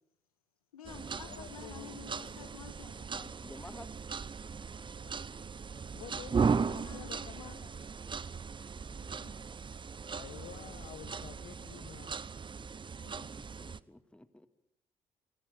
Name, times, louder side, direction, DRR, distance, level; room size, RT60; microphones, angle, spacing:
voice 1, 0.7-3.3 6.8-7.7 8.9-9.3 13.0-13.3, left 8 dB, 80° left, 8 dB, 2.1 m, -51 dB
sound 1, 0.8-13.8, right 5 dB, 25° right, 0.9 m, -37 dB
voice 2, 1.2-1.9 5.0-5.4 5.9-7.6 10.1-12.2, left 11 dB, 55° left, 11 dB, 1.1 m, -50 dB
voice 3, 3.4-3.9 13.4-14.5, left 1 dB, 5° left, 11 dB, 1.9 m, -51 dB
27.0 x 21.5 x 7.1 m, 0.76 s
figure-of-eight pair, 45°, 18 cm